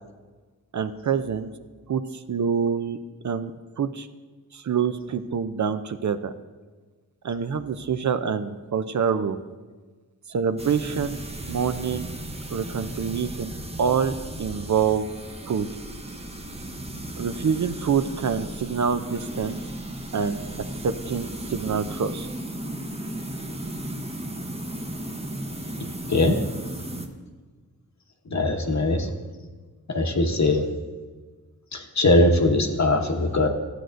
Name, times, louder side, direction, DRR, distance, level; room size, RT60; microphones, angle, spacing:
voice 1, 0.7-1.5 1.9-3.0 3.2-3.5 3.8-4.1 4.5-6.3 7.2-9.4 10.3-11.2 11.5-12.1 12.5-13.5 13.8-15.1 15.4-15.7 17.2-19.6 20.1-20.4 20.8-22.3, right 6 dB, 50° right, 10 dB, 0.4 m, -26 dB
sound 1, 10.6-27.1, right 1 dB, 15° right, 0.7 m, -35 dB
voice 2, 28.3-29.1 29.9-30.6 31.7-33.5, left 2 dB, 50° left, 5 dB, 0.9 m, -21 dB
13.0 x 7.7 x 2.5 m, 1.4 s
wide cardioid pair, 75°, 37 cm